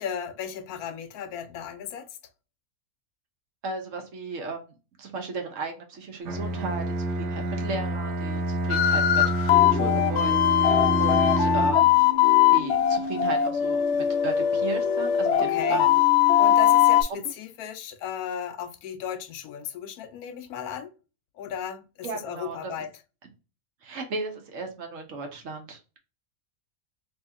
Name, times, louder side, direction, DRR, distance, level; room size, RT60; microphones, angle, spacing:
voice 1, 0.0-2.1 15.4-15.8 16.4-20.9 21.4-22.9, left 8 dB, 85° left, 1.1 m, -35 dB
voice 2, 3.6-11.9 12.5-16.0 22.0-22.7 23.8-25.8, right 3 dB, 65° right, 1.2 m, -36 dB
Bowed string instrument, 6.3-11.9, right 1 dB, 85° right, 1.2 m, -28 dB
sound 1, 8.7-17.0, left 10 dB, 65° left, 0.7 m, -21 dB
3.2 x 3.0 x 3.5 m
omnidirectional pair, 1.5 m